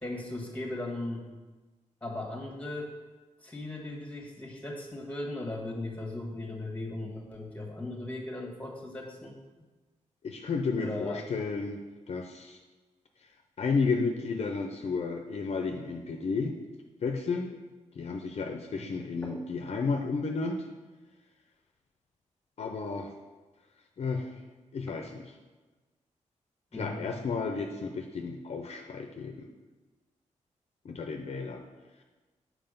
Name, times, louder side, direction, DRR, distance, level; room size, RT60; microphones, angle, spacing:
voice 1, 0.0-1.2 2.0-2.9 3.4-9.4 10.8-11.2 18.7-18.8 19.2-19.4 24.8-25.0 26.7-27.0, left 2 dB, 10° left, 0 dB, 1.5 m, -37 dB
voice 2, 10.2-12.6 13.6-16.6 17.0-17.5 17.9-20.7 22.6-23.1 24.0-24.3 24.7-25.3 26.7-29.5 30.8-31.6, left 4 dB, 55° left, 3 dB, 0.6 m, -32 dB
5.7 x 4.7 x 5.2 m, 1.2 s
cardioid pair, 90°, 13 cm